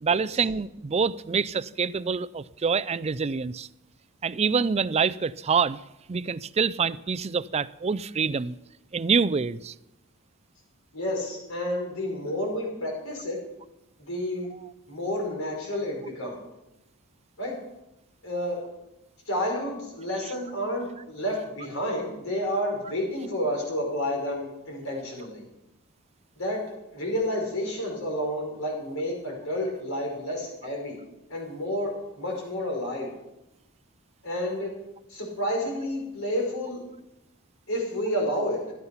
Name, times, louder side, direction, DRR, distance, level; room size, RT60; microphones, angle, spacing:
voice 1, 0.0-3.7 4.2-5.8 6.1-8.6 8.9-9.7, right 5 dB, 30° right, 0.4 m, -26 dB
voice 2, 10.9-13.4 14.0-14.5 14.9-16.4 17.4-17.6 18.2-18.6 19.3-25.4 26.4-26.6 26.9-31.0 31.3-33.1 34.2-34.7 35.1-36.8 37.7-38.6, left 1 dB, 75° left, 5.6 m, -30 dB
15.5 x 12.5 x 5.6 m
head